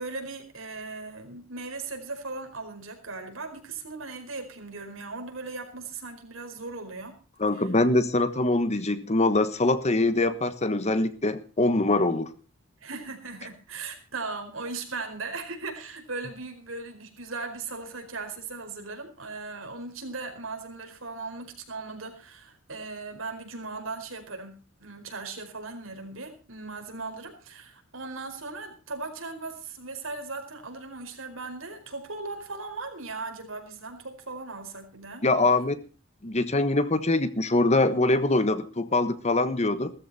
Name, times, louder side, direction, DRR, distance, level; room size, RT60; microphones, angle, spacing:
voice 1, 0.0-7.2 7.5-7.7 12.8-35.2, right 3 dB, 85° right, 5 dB, 4.8 m, -38 dB
voice 2, 7.4-12.3 35.2-35.8 36.2-39.9, left 2 dB, 35° left, 13 dB, 1.3 m, -23 dB
17.5 x 14.0 x 4.2 m, 0.36 s
head